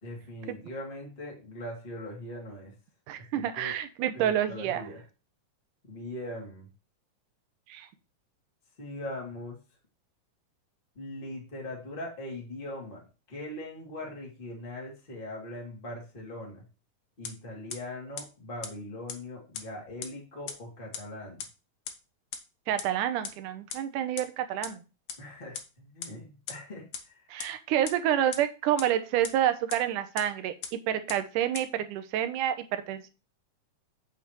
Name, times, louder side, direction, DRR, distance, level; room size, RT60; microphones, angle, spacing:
voice 1, 0.0-2.7 3.1-3.8 4.1-5.0 5.8-6.7 8.8-9.6 10.9-16.6 17.2-21.4 25.2-27.3, left 1 dB, 15° left, -2 dB, 2.4 m, -41 dB
voice 2, 3.1-4.9 7.7-7.9 22.7-24.8 27.3-33.1, right 11 dB, 80° right, 10 dB, 2.3 m, -28 dB
sound 1, 17.2-17.3 17.7-17.8 18.2-18.3 18.6-18.7 19.1-19.2 19.5-19.6 20.0-20.1 20.5-20.6 20.9-21.0 21.4-21.5 21.9-22.0 22.3-22.4 22.8-22.9 23.2-23.3 23.7-23.8 24.2-24.3 24.6-24.7 25.1-25.2 25.5-25.6 26.0-26.1 26.5-26.6 26.9-27.0 27.4-27.5 27.9-28.0 28.3-28.4 28.8-28.9 29.2-29.3 29.7-29.8 30.2-30.3 30.6-30.7 31.1-31.2 31.5-31.6, left 7 dB, 70° left, 1.4 m, -35 dB
8.1 x 6.8 x 3.1 m, 0.31 s
omnidirectional pair, 3.7 m